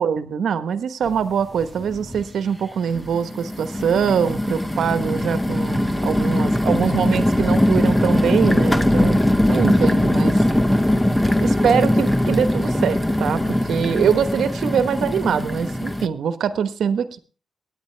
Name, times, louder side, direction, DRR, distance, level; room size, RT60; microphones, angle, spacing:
voice 1, 0.0-9.2 9.5-10.4 11.4-17.2, right 7 dB, 70° right, 11 dB, 1.2 m, -23 dB
sound 1, 1.1-1.2 1.6-2.2 2.9-16.1, left 1 dB, 5° left, 0.8 m, -20 dB
17.5 x 10.0 x 3.4 m, 0.35 s
cardioid pair, 110°, 0 cm